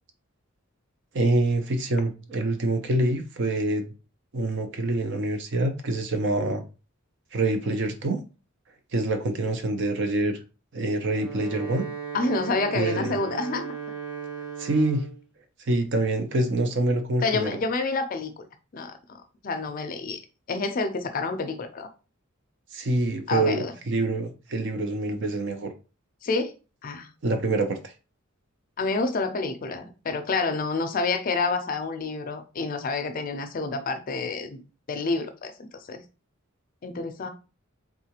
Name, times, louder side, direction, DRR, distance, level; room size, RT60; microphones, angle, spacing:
voice 1, 1.1-3.9 4.3-6.6 7.3-8.2 8.9-10.4 10.7-11.8 12.7-13.2 14.6-15.0 15.7-17.5 22.7-25.7 27.2-27.9, right 2 dB, 55° right, 0.5 m, -26 dB
Wind instrument woodwind instrument, 11.0-15.2, right 7 dB, 5° right, 0.8 m, -36 dB
voice 2, 12.1-13.7 17.2-18.4 18.7-20.2 20.5-21.9 23.3-23.7 26.2-26.5 26.8-27.1 28.8-34.6 34.9-36.0 36.8-37.3, left 3 dB, 40° left, 0.4 m, -28 dB
3.5 x 2.4 x 2.9 m
head